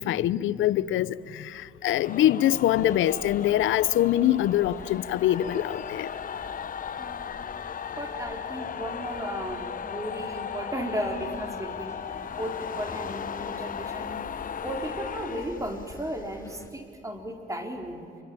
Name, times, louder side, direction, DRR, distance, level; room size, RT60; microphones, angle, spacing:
voice 1, 0.0-6.1, left 12 dB, 80° left, 0.8 m, -24 dB
sound 1, 2.0-16.2, left 8 dB, 45° left, 0.8 m, -36 dB
sound 2, 2.7-16.7, left 2 dB, 15° left, 2.3 m, -49 dB
voice 2, 7.0-7.4 8.0-12.0 12.4-14.3 14.6-18.1, right 1 dB, 15° right, 4.3 m, -35 dB
28.0 x 23.5 x 8.8 m
cardioid pair, 90°, 20 cm